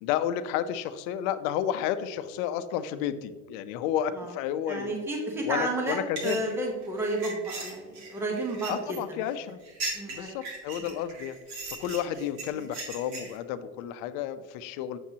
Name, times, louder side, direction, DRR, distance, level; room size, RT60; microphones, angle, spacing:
voice 1, 0.0-4.9 5.4-6.4 8.7-9.6 10.1-11.4 11.8-15.0, left 10 dB, 90° left, 12 dB, 0.6 m, -31 dB
voice 2, 4.7-9.0 9.9-10.3 10.8-10.9, right 2 dB, 10° right, 0 dB, 0.9 m, -31 dB
sound 1, 5.9-13.4, right 3 dB, 60° right, 2.0 m, -39 dB
7.4 x 7.0 x 2.8 m, 1.3 s
cardioid pair, 170°, 31 cm